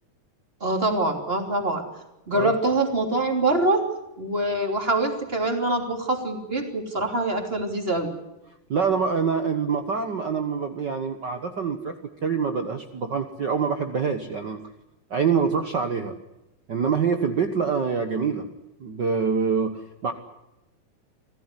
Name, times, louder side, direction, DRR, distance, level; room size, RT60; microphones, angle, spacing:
voice 1, 0.6-1.8 2.3-3.8 4.2-8.1, right 2 dB, 20° right, 4 dB, 3.2 m, -24 dB
voice 2, 8.7-11.9 12.2-14.6 15.1-16.1 16.7-18.5 18.8-20.1, right 6 dB, 50° right, 7 dB, 1.4 m, -25 dB
26.0 x 16.0 x 9.8 m, 0.92 s
omnidirectional pair, 3.4 m